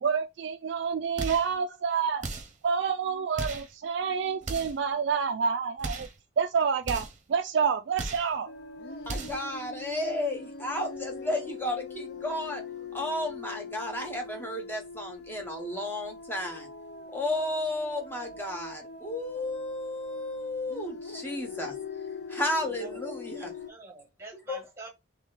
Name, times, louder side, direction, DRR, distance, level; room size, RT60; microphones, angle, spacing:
voice 1, 0.0-2.3 2.6-6.1 6.4-8.5, right 6 dB, 60° right, 0.3 m, -28 dB
sound 1, 1.2-1.5 2.2-2.6 3.3-3.7 4.4-4.8 5.8-6.2 6.8-7.2 7.9-8.3 9.0-9.5, right 3 dB, 40° right, 0.8 m, -36 dB
sound 2, 8.5-23.7, left 5 dB, 55° left, 0.5 m, -42 dB
voice 2, 9.1-12.6 12.9-16.7 17.1-21.7 22.3-23.4 24.5-24.6, left 1 dB, 10° left, 1.0 m, -33 dB
voice 3, 22.6-23.0 23.4-24.9, right 3 dB, 15° right, 1.3 m, -46 dB
3.6 x 3.3 x 3.9 m
head